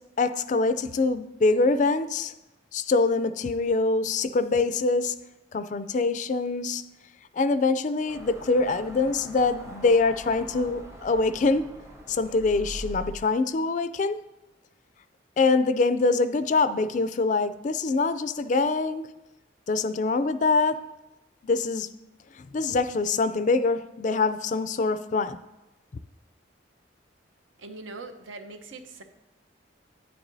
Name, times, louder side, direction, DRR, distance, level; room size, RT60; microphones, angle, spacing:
voice 1, 0.2-2.3 2.7-5.1 5.5-6.8 7.3-11.7 12.1-14.2 15.4-19.1 19.7-20.8 21.4-21.9 22.4-25.4, left 3 dB, 40° left, 13 dB, 0.3 m, -24 dB
sound 1, 8.1-13.2, equal, 15° right, 0.7 m, -42 dB
voice 2, 27.6-29.0, right 3 dB, 85° right, 7 dB, 0.8 m, -41 dB
10.0 x 9.6 x 2.7 m, 1.0 s
head